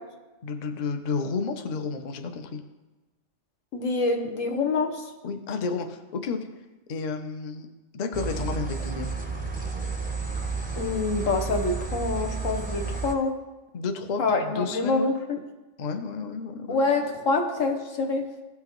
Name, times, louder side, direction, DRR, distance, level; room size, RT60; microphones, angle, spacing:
voice 1, 0.4-2.6 5.2-6.4 6.9-7.7 7.9-9.1 13.7-15.2 15.8-16.8, left 4 dB, 45° left, 6 dB, 0.6 m, -31 dB
voice 2, 3.7-5.0 10.8-13.4 14.2-15.4 16.7-18.3, left 3 dB, 85° left, 4 dB, 1.4 m, -26 dB
sound 1, 8.1-13.1, right 4 dB, 10° right, 0.7 m, -31 dB
15.5 x 5.7 x 3.1 m, 1.1 s
omnidirectional pair, 1.3 m